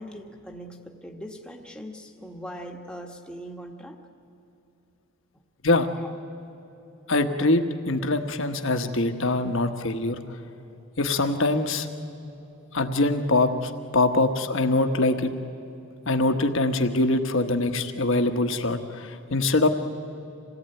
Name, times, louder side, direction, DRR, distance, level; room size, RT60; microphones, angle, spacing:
voice 1, 0.0-4.0 6.0-6.1 7.4-7.5, equal, 5° left, 2 dB, 1.4 m, -40 dB
voice 2, 7.1-10.2 11.0-11.9 12.7-15.3 16.1-19.7, left 2 dB, 60° left, 7 dB, 1.3 m, -23 dB
26.5 x 18.0 x 9.1 m, 3.0 s
head